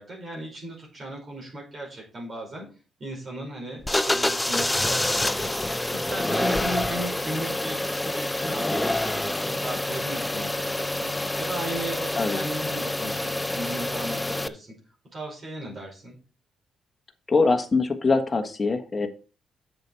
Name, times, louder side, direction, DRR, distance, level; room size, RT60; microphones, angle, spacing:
voice 1, 0.0-2.6 3.0-14.7 15.1-16.2, right 1 dB, 40° right, -2 dB, 4.9 m, -36 dB
sound 1, 3.8-14.5, left 1 dB, 10° left, 0.5 m, -27 dB
voice 2, 17.3-19.1, left 3 dB, 25° left, 6 dB, 1.4 m, -23 dB
7.9 x 6.8 x 4.6 m, 0.35 s
cardioid pair, 90°, 0 cm